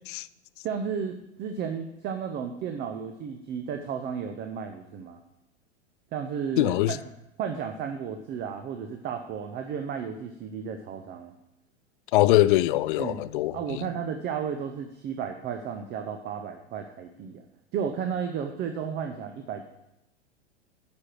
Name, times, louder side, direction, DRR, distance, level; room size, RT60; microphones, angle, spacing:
voice 1, 0.6-5.2 6.1-7.0 7.4-11.3 13.0-13.2 13.5-17.4 17.7-19.7, right 7 dB, 30° right, 0.7 m, -33 dB
voice 2, 6.6-7.0 12.1-13.9, left 15 dB, 50° left, 0.4 m, -23 dB
9.6 x 5.2 x 6.0 m
figure-of-eight pair, 95°, 35 cm